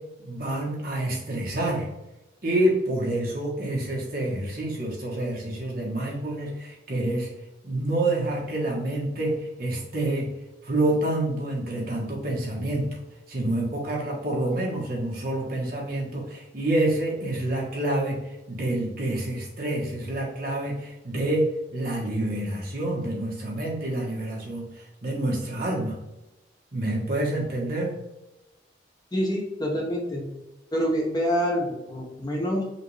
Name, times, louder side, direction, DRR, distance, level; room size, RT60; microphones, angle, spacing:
voice 1, 0.2-1.9 2.4-7.3 7.6-9.3 9.6-10.3 10.6-12.9 13.3-18.2 18.5-21.5 21.7-24.7 25.0-25.9 26.7-27.9, right 1 dB, 50° right, -3 dB, 1.3 m, -27 dB
voice 2, 29.1-30.2 30.7-32.6, equal, 20° left, -1 dB, 0.8 m, -26 dB
5.7 x 2.5 x 3.3 m, 0.95 s
head